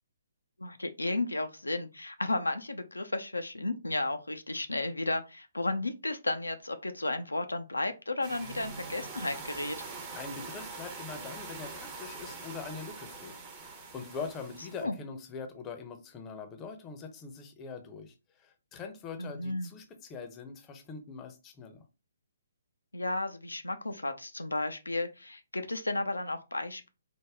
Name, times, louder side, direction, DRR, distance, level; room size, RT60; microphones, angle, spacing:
voice 1, 0.6-9.8 14.8-15.0 19.2-19.7 22.9-26.9, left 2 dB, 85° left, 0.4 m, -33 dB
sound 1, 8.2-14.8, right 4 dB, 25° right, 0.7 m, -43 dB
voice 2, 10.1-21.8, left 5 dB, 20° left, 0.6 m, -43 dB
3.4 x 2.1 x 3.4 m
figure-of-eight pair, 135°, 0 cm